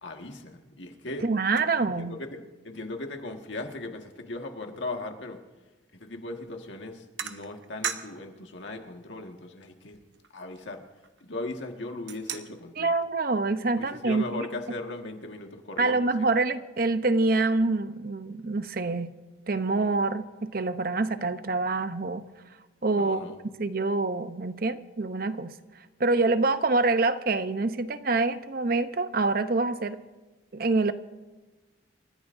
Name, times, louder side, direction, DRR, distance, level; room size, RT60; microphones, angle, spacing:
voice 1, 0.0-1.3 1.9-5.4 5.9-10.0 10.3-10.8 11.2-12.9 13.8-16.0 22.9-23.4, left 2 dB, 75° left, 3 dB, 1.7 m, -38 dB
voice 2, 1.2-2.2 12.8-14.5 15.8-19.1 19.5-22.2 22.8-23.2 23.6-25.5 26.0-30.0 30.5-30.9, right 3 dB, 50° right, 11 dB, 0.7 m, -26 dB
sound 1, 6.3-6.5 7.2-8.3 8.7-8.8 9.4-9.5 9.7-11.4 11.8-12.7, right 8 dB, 70° right, 0.9 m, -37 dB
28.5 x 14.5 x 2.6 m, 1.2 s
head